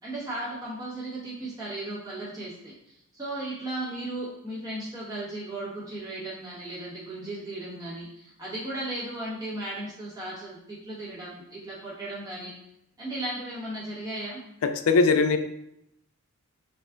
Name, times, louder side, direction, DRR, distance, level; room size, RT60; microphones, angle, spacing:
voice 1, 0.0-12.5 13.0-14.4, right 1 dB, 15° right, -9 dB, 1.1 m, -36 dB
voice 2, 14.6-15.4, left 4 dB, 75° left, 9 dB, 0.4 m, -20 dB
4.1 x 2.5 x 3.4 m, 0.79 s
head